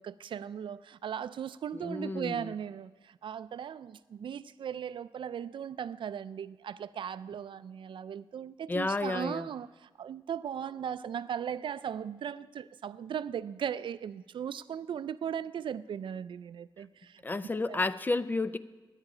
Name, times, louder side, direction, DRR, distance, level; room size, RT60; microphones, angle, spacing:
voice 1, 0.0-17.2 17.7-17.8, right 8 dB, 70° right, 0.4 m, -38 dB
voice 2, 1.7-2.5 8.7-9.5 17.2-18.6, left 3 dB, 20° left, 0.4 m, -31 dB
20.5 x 9.8 x 4.9 m
wide cardioid pair, 160°, 9 cm